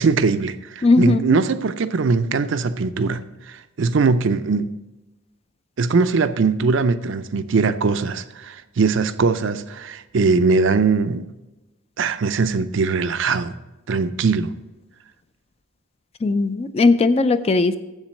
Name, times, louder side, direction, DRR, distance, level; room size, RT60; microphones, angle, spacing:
voice 1, 0.0-4.7 5.8-11.3 12.0-13.6 13.9-14.5, right 4 dB, 55° right, 0.4 m, -21 dB
voice 2, 0.8-1.4 16.2-17.8, left 3 dB, 25° left, 0.3 m, -18 dB
7.7 x 7.3 x 6.3 m
head